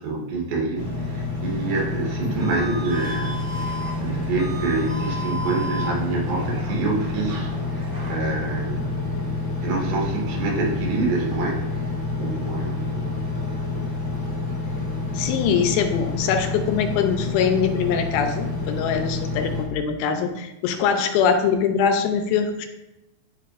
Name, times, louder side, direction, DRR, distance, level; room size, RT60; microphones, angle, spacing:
voice 1, 0.0-3.6 4.0-9.0 9.6-11.6 12.2-13.2, right 3 dB, 80° right, -1 dB, 3.1 m, -27 dB
Engine, 0.7-19.6, left 3 dB, 50° left, 0.3 m, -28 dB
sound 1, 1.5-8.2, equal, 40° right, 1.6 m, -36 dB
voice 2, 15.1-22.7, left 7 dB, 80° left, 6 dB, 2.5 m, -23 dB
11.0 x 4.0 x 2.5 m, 0.96 s
omnidirectional pair, 4.4 m